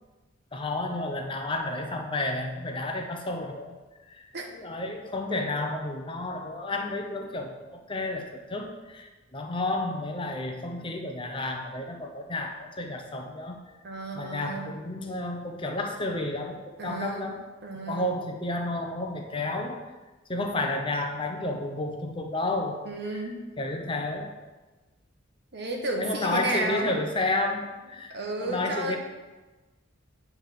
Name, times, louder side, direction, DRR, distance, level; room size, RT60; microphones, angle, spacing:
voice 1, 0.5-3.8 4.1-4.3 4.5-13.6 14.1-17.4 17.9-19.8 20.3-22.8 23.6-24.3 26.0-28.1 28.4-29.0, left 2 dB, 25° left, 3 dB, 0.8 m, -31 dB
voice 2, 13.8-14.7 16.8-17.3 17.6-18.1 22.8-23.4 25.5-27.0 28.1-29.0, right 2 dB, 60° right, 2 dB, 1.2 m, -32 dB
9.2 x 3.5 x 5.8 m, 1.2 s
head